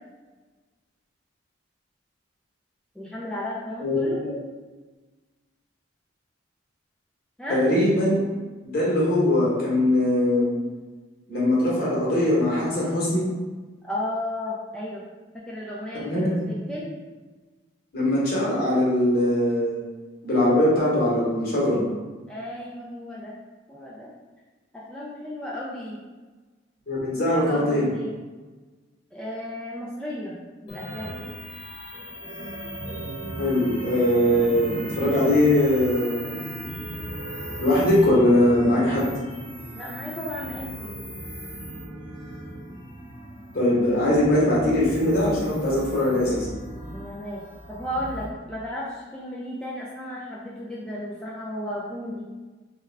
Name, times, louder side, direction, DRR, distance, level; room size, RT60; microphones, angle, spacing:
voice 1, 3.0-4.2 7.4-7.6 13.8-15.0 15.3-16.9 22.3-23.4 23.7-24.1 24.7-26.0 27.1-28.2 29.1-30.4 30.6-31.2 39.8-41.0 46.9-52.2, left 1 dB, 5° left, -7 dB, 0.3 m, -34 dB
voice 2, 3.8-4.3 7.5-8.2 8.6-10.5 11.3-13.3 15.9-16.4 17.9-19.8 20.2-21.8 26.9-27.9 33.4-36.6 37.6-39.0 43.5-46.5, left 1 dB, 50° left, -6 dB, 1.0 m, -21 dB
sound 1, 30.7-48.3, right 1 dB, 25° left, 0.9 m, -36 dB
3.2 x 2.3 x 3.3 m, 1.3 s
head